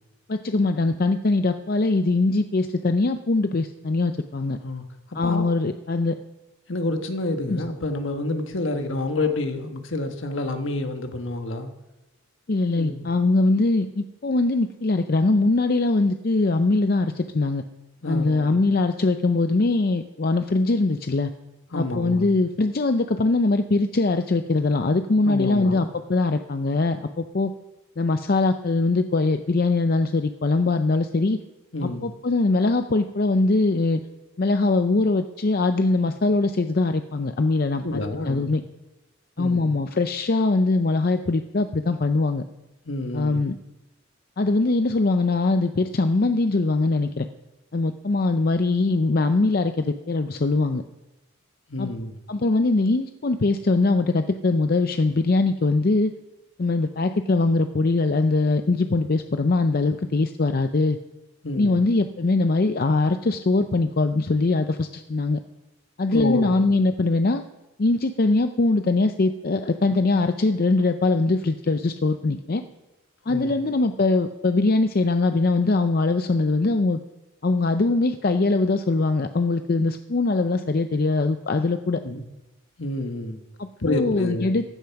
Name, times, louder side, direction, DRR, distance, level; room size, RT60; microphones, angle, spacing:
voice 1, 0.3-4.6 5.1-6.2 7.5-7.6 12.5-17.6 18.1-21.3 21.7-27.5 28.0-31.4 31.8-34.0 34.4-38.0 38.3-38.6 39.4-42.4 43.1-43.6 44.4-47.3 47.7-50.8 51.8-51.9 52.3-56.1 56.6-61.0 61.6-65.4 66.0-67.4 67.8-72.6 73.3-77.0 77.4-82.0 83.6-84.6, left 3 dB, 45° left, 8 dB, 0.5 m, -22 dB
voice 2, 5.1-5.5 6.7-11.7 12.8-13.1 18.0-18.6 21.7-22.4 25.2-25.9 31.7-32.1 37.8-38.5 39.4-39.7 42.9-43.4 51.7-52.2 61.4-61.8 66.1-66.6 73.3-73.5 82.0-82.2 82.8-83.4 83.8-84.6, left 2 dB, 65° left, 6 dB, 1.4 m, -28 dB
15.5 x 10.5 x 5.8 m, 1.0 s
head